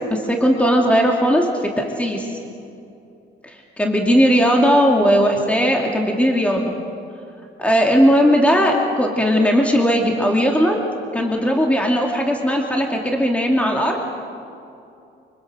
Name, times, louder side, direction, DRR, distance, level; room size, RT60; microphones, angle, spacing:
voice 1, 0.1-1.5 1.8-2.3 3.4-6.7 7.6-10.8 11.1-14.0, equal, 5° left, 1 dB, 2.8 m, -17 dB
25.5 x 24.0 x 6.4 m, 2.6 s
cardioid pair, 90°, 20 cm